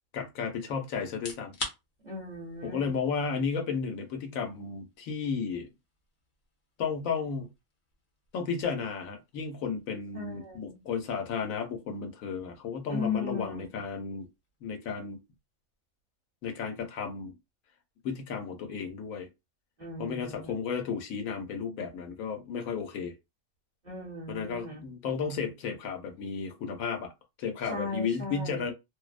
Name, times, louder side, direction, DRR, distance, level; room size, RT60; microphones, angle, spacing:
voice 1, 0.1-1.5 2.6-5.7 6.8-7.5 8.3-14.3 14.6-15.2 16.4-17.3 18.0-19.3 20.0-23.1 24.3-27.1 27.4-28.7, left 6 dB, 85° left, 1.1 m, -33 dB
sound 1, 1.1-15.9, left 3 dB, 60° left, 1.0 m, -49 dB
voice 2, 2.0-2.8 10.1-10.8 12.9-13.8 19.8-20.5 23.8-24.9 27.6-28.6, left 3 dB, 40° right, 0.8 m, -37 dB
2.6 x 2.0 x 2.4 m
omnidirectional pair, 1.4 m